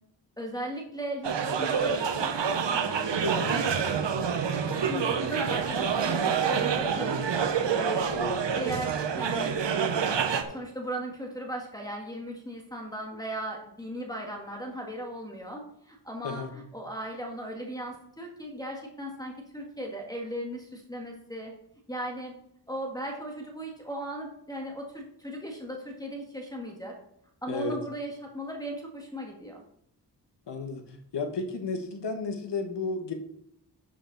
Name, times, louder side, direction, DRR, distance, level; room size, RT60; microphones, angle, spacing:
voice 1, 0.4-3.1 3.4-4.1 4.5-7.3 7.6-8.2 8.5-9.6 10.3-21.5 21.9-22.3 22.7-27.0 27.4-29.6, equal, 10° left, 0 dB, 1.6 m, -37 dB
sound 1, 1.2-10.4, right 7 dB, 85° right, 1.0 m, -27 dB
voice 2, 3.2-3.6 4.7-5.0 8.1-8.3 16.2-16.5 27.5-27.7 30.5-30.8 31.1-33.1, left 3 dB, 75° left, 5 dB, 1.4 m, -33 dB
11.0 x 6.4 x 4.0 m, 0.73 s
wide cardioid pair, 130°, 42 cm